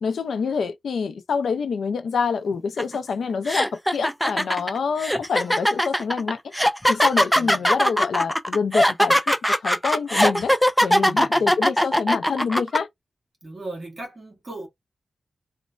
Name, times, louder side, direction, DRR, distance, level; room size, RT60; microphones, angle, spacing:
voice 1, 0.0-6.4 6.9-9.4 9.6-10.5 10.8-12.9, left 5 dB, 90° left, 0.4 m, -26 dB
sound 1, 2.8-3.0 3.5-12.8, equal, ahead, 0.3 m, -20 dB
voice 2, 11.0-11.5 13.4-14.7, right 2 dB, 30° right, 1.4 m, -37 dB
3.0 x 2.1 x 2.4 m
wide cardioid pair, 155°, 0 cm